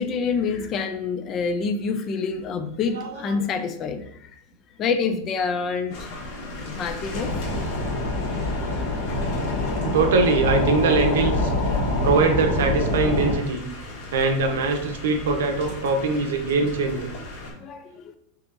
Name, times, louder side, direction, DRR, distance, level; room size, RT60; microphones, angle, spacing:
voice 1, 0.0-4.0 4.8-5.9 6.7-7.3 17.6-17.8, left 5 dB, 30° left, 8 dB, 0.5 m, -26 dB
voice 2, 2.9-3.4 8.8-9.4 9.8-11.5 12.0-13.7 14.1-17.1, right 4 dB, 80° right, 4 dB, 0.8 m, -23 dB
sound 1, 5.9-17.5, left 1 dB, 50° left, 1.4 m, -37 dB
sound 2, 7.1-13.3, left 2 dB, 85° left, 1.3 m, -25 dB
5.8 x 2.8 x 2.6 m, 0.70 s
supercardioid pair, 145°, 0 cm